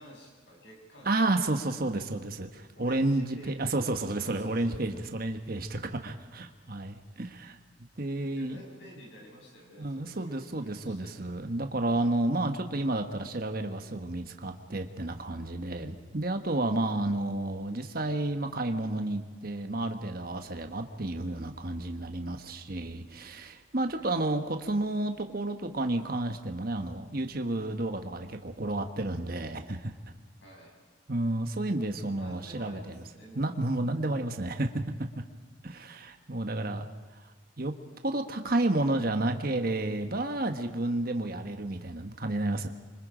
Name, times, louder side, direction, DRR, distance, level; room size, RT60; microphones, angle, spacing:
voice 1, 0.0-1.2 1.7-1.9 2.8-5.7 8.4-11.3 23.9-24.1 30.4-30.7 32.1-33.6, equal, 60° left, -1 dB, 7.0 m, -51 dB
voice 2, 1.0-7.6 8.0-8.6 9.8-29.9 31.1-33.0 33.3-34.7 35.6-36.9 37.6-37.8 38.0-42.7, right 2 dB, 45° right, 6 dB, 1.2 m, -31 dB
27.0 x 24.5 x 5.1 m, 1.4 s
head